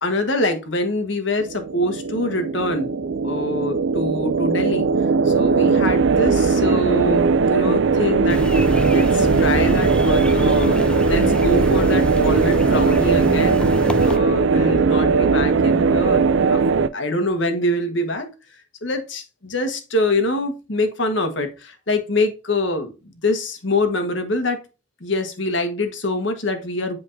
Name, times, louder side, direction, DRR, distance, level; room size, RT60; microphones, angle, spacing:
voice 1, 0.0-2.9 3.2-4.9 5.2-8.4 8.9-13.7 14.0-16.6 16.9-18.3 18.8-22.9 23.2-24.6 25.0-27.0, left 1 dB, 70° left, 7 dB, 1.4 m, -24 dB
sound 1, 1.4-16.9, right 4 dB, 70° right, 0.4 m, -19 dB
African Bush, 8.3-14.2, left 1 dB, 5° left, 0.4 m, -26 dB
8.0 x 4.7 x 2.7 m, 0.30 s
head